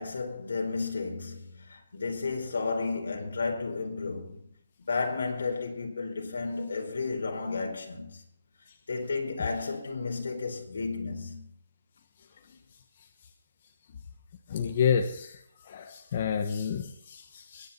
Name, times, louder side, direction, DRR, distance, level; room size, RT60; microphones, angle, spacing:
voice 1, 0.0-4.4 4.9-8.2 8.9-11.4, left 4 dB, 65° left, 4.5 m, -32 dB
voice 2, 14.5-15.3 15.7-17.7, left 7 dB, 30° left, 1.1 m, -29 dB
22.0 x 9.6 x 4.3 m
hypercardioid pair, 175°, 0 cm